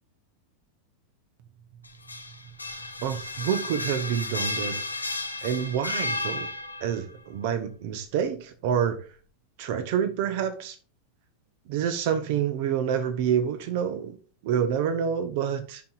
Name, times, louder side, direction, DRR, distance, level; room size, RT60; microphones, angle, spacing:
sound 1, 1.8-7.0, left 2 dB, 80° left, 0.9 m, -33 dB
voice 1, 3.0-5.1 5.4-6.5 6.8-9.0 9.6-10.8 11.7-14.2 14.4-15.8, right 8 dB, 50° right, 1.2 m, -27 dB
14.5 x 5.7 x 2.6 m
figure-of-eight pair, 90°, 0 cm